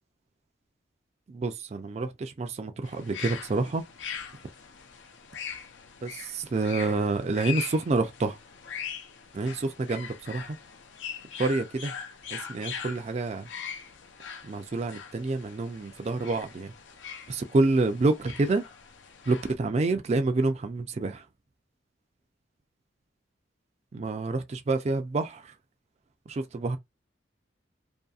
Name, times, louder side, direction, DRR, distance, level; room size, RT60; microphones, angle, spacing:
voice 1, 1.3-3.8 6.0-8.4 9.3-10.6 11.4-11.9 12.3-13.5 14.4-16.7 17.3-18.6 19.3-21.3 23.9-25.5 26.3-26.8, right 3 dB, 35° right, 0.4 m, -28 dB
sound 1, 2.8-19.5, left 7 dB, 70° left, 0.5 m, -41 dB
2.7 x 2.7 x 2.3 m
head